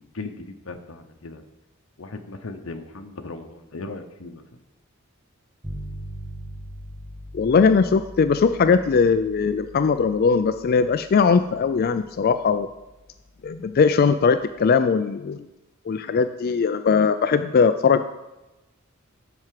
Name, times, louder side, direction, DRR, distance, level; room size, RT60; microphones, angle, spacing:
voice 1, 0.1-1.4 2.0-4.4, left 3 dB, 65° left, 5 dB, 0.9 m, -37 dB
sound 1, 5.6-14.6, equal, 15° right, 1.7 m, -42 dB
voice 2, 7.3-12.7 13.4-15.4 15.9-18.0, left 5 dB, 45° left, 11 dB, 0.3 m, -20 dB
7.8 x 5.9 x 7.5 m, 1.0 s
head